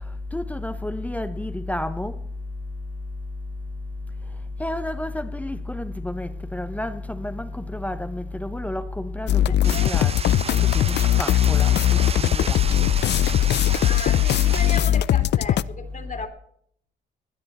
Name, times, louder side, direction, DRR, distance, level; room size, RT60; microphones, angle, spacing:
voice 1, 0.3-2.1 4.6-10.1 10.7-12.6, left 1 dB, 5° left, 0.8 m, -30 dB
sound 1, 9.3-15.6, left 12 dB, 60° left, 0.5 m, -20 dB
voice 2, 9.4-10.0 13.7-16.3, left 4 dB, 40° left, 2.8 m, -35 dB
sound 2, 9.6-14.8, right 5 dB, 30° right, 0.7 m, -33 dB
17.0 x 10.5 x 4.2 m
cardioid pair, 90°, 20 cm